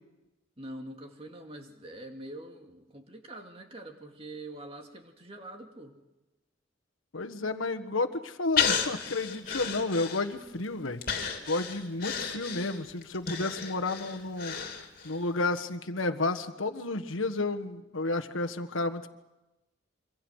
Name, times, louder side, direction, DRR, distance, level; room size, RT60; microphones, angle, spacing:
voice 1, 0.6-6.0, right 1 dB, 30° right, 3 dB, 2.4 m, -44 dB
voice 2, 7.1-11.0 11.5-14.5 15.0-19.1, left 2 dB, 85° left, 7 dB, 1.4 m, -31 dB
Breathing, 8.6-10.5 11.0-15.2 15.6-15.7, left 7 dB, 50° left, 3.1 m, -32 dB
26.5 x 25.0 x 6.5 m, 1.0 s
head